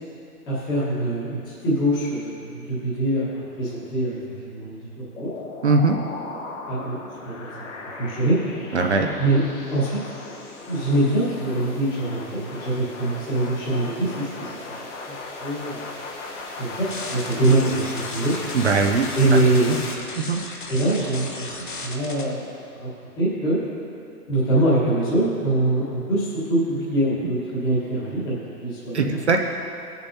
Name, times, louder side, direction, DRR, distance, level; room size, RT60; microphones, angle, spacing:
voice 1, 0.5-5.3 6.7-7.0 7.2-7.5 8.0-8.4 9.2-9.4 9.7-10.0 10.7-14.6 15.4-15.9 16.6-18.4 19.1-19.8 20.7-21.5 21.8-22.9 23.2-23.6 24.3-29.2, right 1 dB, 10° left, -10 dB, 1.3 m, -23 dB
sound 1, 5.2-19.9, left 3 dB, 50° left, 1.3 m, -37 dB
voice 2, 5.6-6.0 8.7-9.1 18.5-19.1 20.2-20.4 28.9-29.5, right 4 dB, 50° right, 3 dB, 0.5 m, -20 dB
sound 2, 16.9-22.2, left 2 dB, 35° left, 0.6 m, -36 dB
17.0 x 6.9 x 2.7 m, 2.5 s
hypercardioid pair, 170°, 47 cm